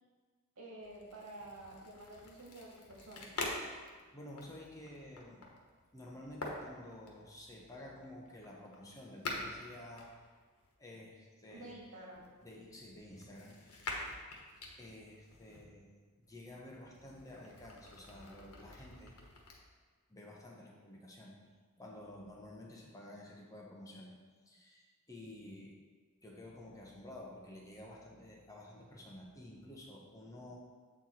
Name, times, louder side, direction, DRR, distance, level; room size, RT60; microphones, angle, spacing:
voice 1, 0.6-3.3 11.5-12.2, right 1 dB, 85° right, -2 dB, 1.7 m, -50 dB
sound 1, 0.8-10.7 11.5-15.6 16.2-19.6, left 2 dB, 85° left, 1.2 m, -47 dB
voice 2, 4.1-5.5 5.9-10.1 10.8-11.8 12.4-13.9 14.8-19.2 20.1-21.4 21.8-24.2 24.5-25.8 26.2-30.6, left 1 dB, 15° left, -3 dB, 1.0 m, -51 dB
7.8 x 4.5 x 4.3 m, 1.5 s
head